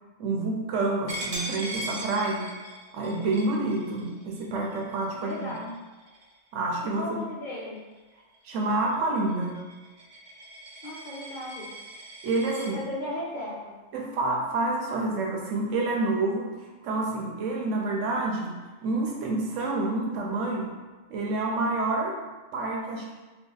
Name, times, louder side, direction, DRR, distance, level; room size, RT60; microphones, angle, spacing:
voice 1, 0.2-2.5 2.9-5.5 6.5-7.2 8.4-9.6 12.2-12.8 13.9-16.5 16.8-20.7 21.1-22.2 22.5-23.1, right 2 dB, 80° right, -1 dB, 1.0 m, -28 dB
Coin (dropping), 1.1-6.5 6.9-7.2 7.6-12.7, right 1 dB, 55° right, 0.4 m, -40 dB
voice 2, 5.1-5.7 6.9-7.8 10.8-11.7 12.6-13.8, left 1 dB, 55° left, -6 dB, 0.5 m, -36 dB
2.8 x 2.2 x 3.7 m, 1.2 s
omnidirectional pair, 1.3 m